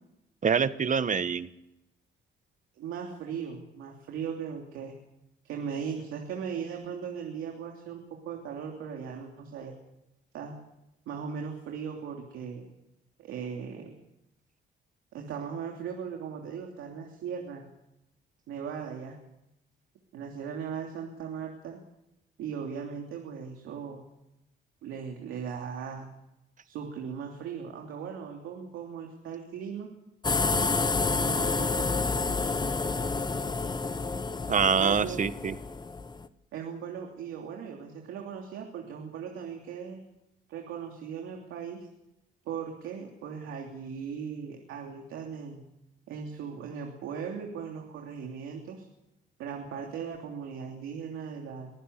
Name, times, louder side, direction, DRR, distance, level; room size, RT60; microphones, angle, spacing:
voice 1, 0.4-1.5 34.5-35.5, right 6 dB, 40° right, 13 dB, 1.2 m, -25 dB
voice 2, 2.7-5.0 5.4-9.7 10.3-10.5 11.1-12.6 13.2-13.9 15.1-17.6 18.5-19.2 20.1-21.8 22.4-24.0 24.8-26.1 26.6-29.9 31.2-31.9 34.8-35.2 36.5-40.0 40.5-41.9 42.4-45.6 46.1-48.9 49.4-51.7, right 7 dB, 90° right, 1 dB, 3.1 m, -38 dB
sound 1, 30.2-36.3, left 3 dB, 20° left, 1.1 m, -29 dB
23.5 x 15.0 x 8.2 m, 0.89 s
cardioid pair, 90°, 20 cm